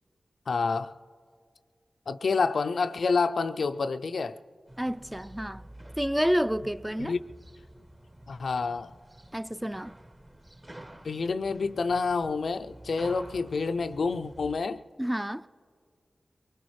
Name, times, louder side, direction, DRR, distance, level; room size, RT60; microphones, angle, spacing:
voice 1, 0.5-0.9 2.1-4.4 7.0-7.2 8.3-8.9 11.0-14.8, left 4 dB, 80° left, 0.3 m, -28 dB
sound 1, 4.7-14.5, right 1 dB, 35° right, 1.3 m, -49 dB
voice 2, 4.8-5.7 6.0-7.1 9.3-10.0 15.0-15.4, equal, 10° right, 0.3 m, -29 dB
23.0 x 19.5 x 3.1 m
cardioid pair, 50°, 0 cm